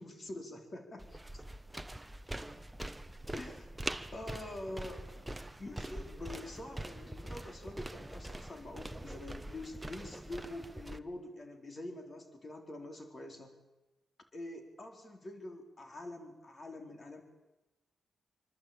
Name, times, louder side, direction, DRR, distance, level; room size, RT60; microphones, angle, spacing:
voice 1, 0.0-1.4 3.3-13.6 14.3-17.2, left 1 dB, 35° left, 4 dB, 4.3 m, -46 dB
sound 1, 1.0-11.0, right 1 dB, 10° right, 1.1 m, -44 dB
26.5 x 24.5 x 9.0 m, 1.0 s
wide cardioid pair, 130°, 0 cm